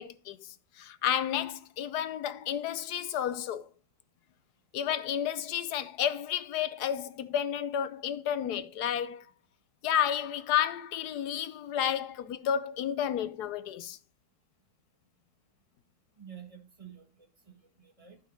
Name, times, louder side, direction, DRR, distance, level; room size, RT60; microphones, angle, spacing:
voice 1, 0.0-3.7 4.7-9.2 9.8-14.0, left 9 dB, 85° left, 1.3 m, -31 dB
voice 2, 16.2-18.2, right 8 dB, 20° right, 1.6 m, -50 dB
11.5 x 5.6 x 4.4 m
omnidirectional pair, 1.7 m